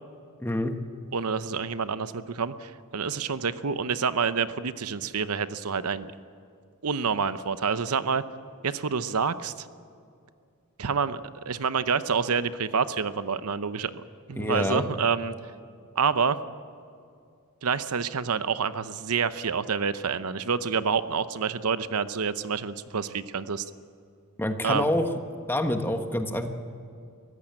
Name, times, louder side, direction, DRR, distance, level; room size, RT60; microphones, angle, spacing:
voice 1, 0.4-0.7 14.4-14.8 24.4-25.1 25.5-26.5, left 1 dB, 10° left, 6 dB, 1.3 m, -26 dB
voice 2, 1.1-6.1 6.8-8.2 8.6-9.7 10.8-11.2 11.5-14.0 14.3-15.3 16.0-16.4 17.6-23.6 24.6-24.8, right 5 dB, 80° right, 13 dB, 0.8 m, -28 dB
23.5 x 14.5 x 8.9 m, 2.4 s
head